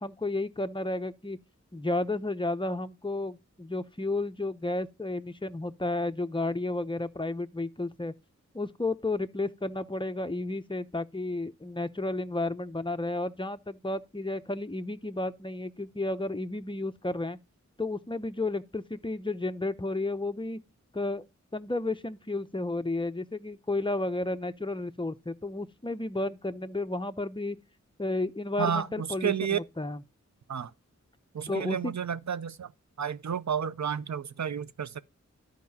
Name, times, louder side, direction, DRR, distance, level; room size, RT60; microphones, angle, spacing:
voice 1, 0.0-1.4 1.7-8.1 8.5-17.4 17.8-20.6 20.9-21.2 21.5-27.6 28.0-30.0 31.5-31.9, left 2 dB, 15° left, 0.6 m, -32 dB
voice 2, 28.6-29.6 30.5-30.7 31.3-32.7 33.0-35.0, right 8 dB, 65° right, 0.5 m, -31 dB
13.5 x 4.8 x 2.8 m
wide cardioid pair, 45°, 30 cm